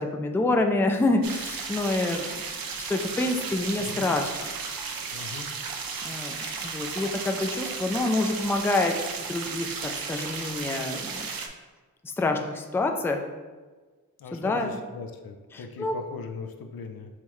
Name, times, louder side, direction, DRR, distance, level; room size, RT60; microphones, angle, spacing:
voice 1, 0.0-2.4 2.9-4.5 6.0-11.3 12.0-13.2 14.3-14.8 15.5-16.0, left 2 dB, 5° left, 4 dB, 0.3 m, -27 dB
sound 1, 1.2-11.5, right 5 dB, 75° right, 0.6 m, -34 dB
voice 2, 3.7-4.1 5.1-5.5 14.2-17.1, left 4 dB, 85° left, 5 dB, 0.5 m, -39 dB
5.6 x 3.1 x 3.0 m, 1.3 s
wide cardioid pair, 100°, 35 cm